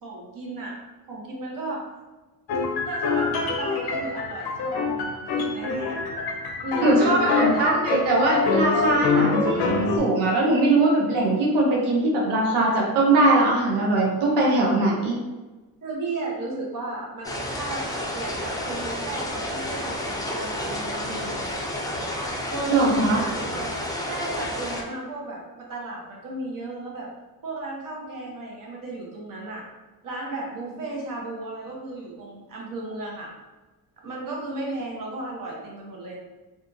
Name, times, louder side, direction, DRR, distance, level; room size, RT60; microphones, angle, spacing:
voice 1, 0.0-1.9 2.9-6.0 6.6-7.8 9.1-9.4 15.8-21.6 22.5-23.8 24.1-27.1 27.4-29.6 30.0-33.3 34.0-36.2, right 2 dB, 55° right, -2 dB, 1.0 m, -34 dB
sound 1, 2.5-10.0, left 4 dB, 65° left, 0.6 m, -25 dB
voice 2, 6.8-9.4 10.0-15.2 22.7-23.2, right 2 dB, 90° right, -3 dB, 0.6 m, -21 dB
sound 2, 17.2-24.8, left 1 dB, 10° left, 0.4 m, -30 dB
2.6 x 2.4 x 2.6 m, 1.2 s
cardioid pair, 75°, 41 cm